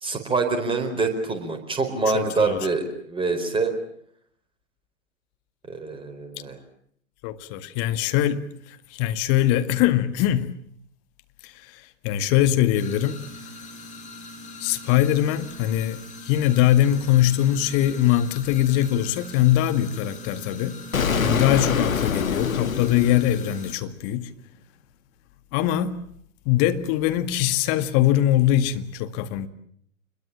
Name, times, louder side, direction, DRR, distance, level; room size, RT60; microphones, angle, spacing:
voice 1, 0.0-3.7 5.7-6.6, right 4 dB, 10° right, 4.5 m, -25 dB
voice 2, 2.1-2.7 7.2-10.5 11.4-13.2 14.6-20.8 21.2-24.3 25.5-26.1 26.5-29.5, left 12 dB, 35° left, 1.9 m, -22 dB
sound 1, 12.8-23.8, left 1 dB, 15° left, 5.9 m, -42 dB
Explosion, 20.9-23.8, left 6 dB, 75° left, 1.8 m, -25 dB
28.0 x 22.0 x 7.4 m
figure-of-eight pair, 110°, 41 cm